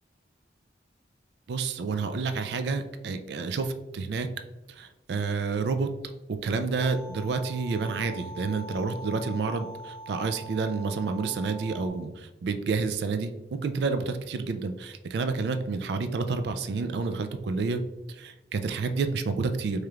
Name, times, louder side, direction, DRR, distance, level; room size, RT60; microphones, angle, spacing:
voice 1, 1.5-4.3 4.7-17.8 18.1-19.9, right 4 dB, 70° right, 9 dB, 0.3 m, -29 dB
sound 1, 6.8-11.9, right 1 dB, 30° left, 1.2 m, -44 dB
4.8 x 3.1 x 2.3 m, 1.0 s
head